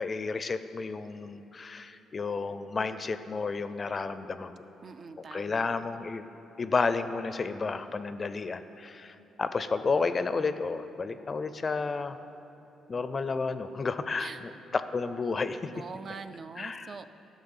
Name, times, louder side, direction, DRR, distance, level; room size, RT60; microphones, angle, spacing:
voice 1, 0.0-4.5 5.3-6.3 6.6-12.2 12.9-15.7 16.6-17.0, left 4 dB, 35° left, 11 dB, 0.4 m, -31 dB
voice 2, 4.8-5.8 14.2-14.4 15.7-17.0, right 4 dB, 45° right, 9 dB, 0.4 m, -43 dB
12.0 x 6.3 x 5.6 m, 3.0 s
cardioid pair, 90°, 0 cm